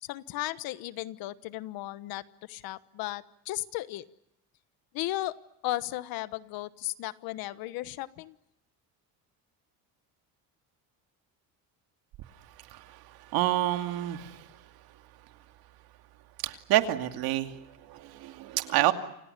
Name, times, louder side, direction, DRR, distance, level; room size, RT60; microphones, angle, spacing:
voice 1, 0.0-4.0 4.9-5.3 5.6-8.4, left 16 dB, 60° left, 15 dB, 1.3 m, -35 dB
voice 2, 12.6-14.6 16.4-18.9, right 14 dB, 65° right, 7 dB, 2.5 m, -29 dB
29.0 x 27.5 x 6.8 m, 0.82 s
cardioid pair, 165°, 39 cm